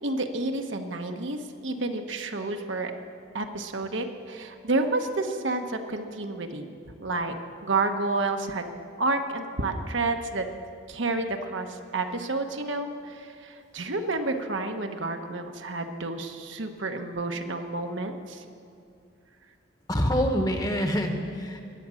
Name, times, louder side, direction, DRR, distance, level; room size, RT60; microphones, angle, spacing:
voice 1, 0.0-2.9 3.3-7.4 7.6-8.7 9.0-10.5 10.9-18.4, right 2 dB, 70° right, 5 dB, 1.1 m, -30 dB
voice 2, 19.9-21.6, equal, 20° left, 5 dB, 1.1 m, -26 dB
21.0 x 8.6 x 6.3 m, 2.4 s
head